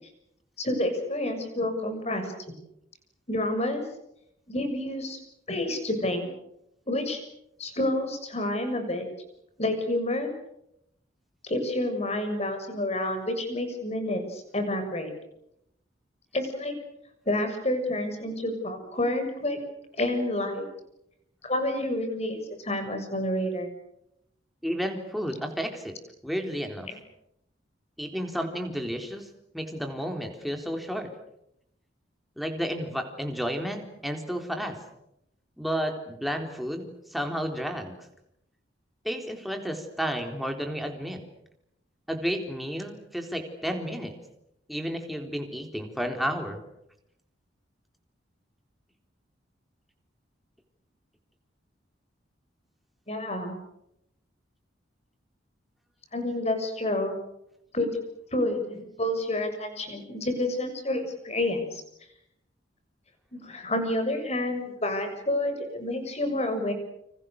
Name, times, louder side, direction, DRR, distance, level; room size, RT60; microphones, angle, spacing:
voice 1, 0.6-2.3 3.3-3.8 4.5-5.2 5.5-6.3 6.9-7.2 7.6-9.0 9.6-10.3 11.4-15.1 16.3-16.7 17.2-19.6 20.0-20.6 21.4-23.7 53.1-53.5 56.1-57.2 57.7-58.0 58.3-61.8 63.3-66.7, left 1 dB, 35° left, 7 dB, 6.7 m, -29 dB
voice 2, 24.6-25.9 26.2-26.9 28.0-29.3 29.5-31.1 32.4-34.8 35.6-38.0 39.0-41.2 42.1-44.1 44.7-46.6, equal, ahead, 3 dB, 3.9 m, -32 dB
29.5 x 27.0 x 6.7 m, 0.80 s
head